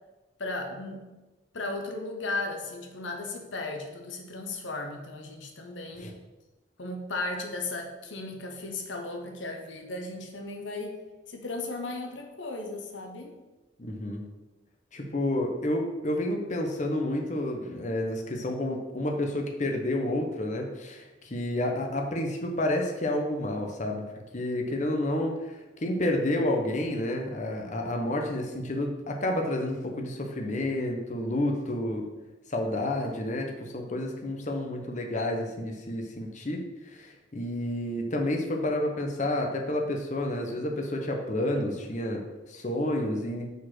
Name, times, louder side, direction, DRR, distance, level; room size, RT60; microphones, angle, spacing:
voice 1, 0.4-1.1 1.5-6.1 6.8-11.0 11.3-13.4, left 2 dB, 75° left, 3 dB, 1.0 m, -36 dB
voice 2, 13.8-14.2 14.9-24.0 24.3-25.5 25.8-32.0 32.5-43.5, left 1 dB, 40° left, 2 dB, 0.9 m, -30 dB
5.2 x 4.3 x 6.0 m, 1.1 s
head